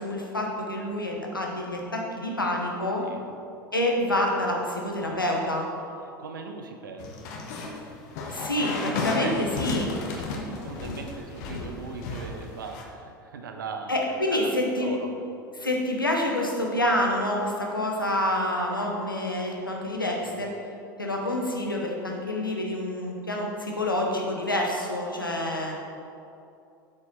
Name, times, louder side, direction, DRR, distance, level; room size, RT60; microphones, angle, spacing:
voice 1, 0.0-3.0 3.7-5.7 8.3-9.9 13.9-14.9 15.6-20.5 21.0-25.7, left 1 dB, 90° left, 0 dB, 1.0 m, -27 dB
voice 2, 6.0-7.1 9.2-9.4 9.8-14.0 14.3-14.5 14.8-15.3 20.2-20.5, right 5 dB, 75° right, 4 dB, 0.8 m, -40 dB
sound 1, 7.0-12.8, left 3 dB, 55° left, 1.1 m, -33 dB
8.4 x 5.1 x 4.2 m, 2.6 s
figure-of-eight pair, 80°, 11 cm